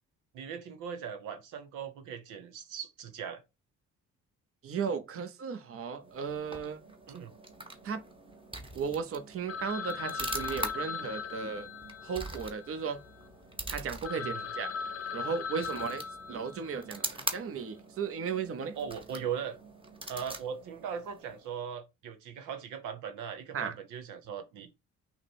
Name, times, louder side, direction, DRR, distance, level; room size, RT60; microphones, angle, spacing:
voice 1, 0.3-3.4 7.1-7.3 14.1-14.4 18.7-19.6 20.1-24.8, right 7 dB, 90° right, 0.9 m, -39 dB
voice 2, 4.6-6.8 7.8-8.0 8.7-11.7 12.0-13.0 13.7-14.7 15.1-18.8 23.5-23.7, right 6 dB, 50° right, 0.8 m, -35 dB
sound 1, 6.0-21.6, right 2 dB, 15° right, 1.0 m, -43 dB
Telephone, 9.5-13.3 13.7-13.8 14.0-16.9, left 5 dB, 55° left, 0.6 m, -39 dB
5.9 x 2.1 x 4.3 m
cardioid pair, 90°, 30 cm